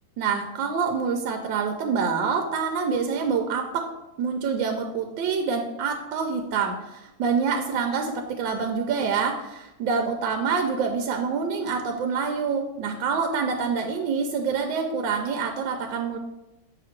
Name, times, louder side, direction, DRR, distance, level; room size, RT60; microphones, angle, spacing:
voice 1, 0.2-3.8 4.2-16.2, right 5 dB, 75° right, 4 dB, 1.2 m, -26 dB
7.6 x 2.9 x 5.8 m, 0.96 s
omnidirectional pair, 2.3 m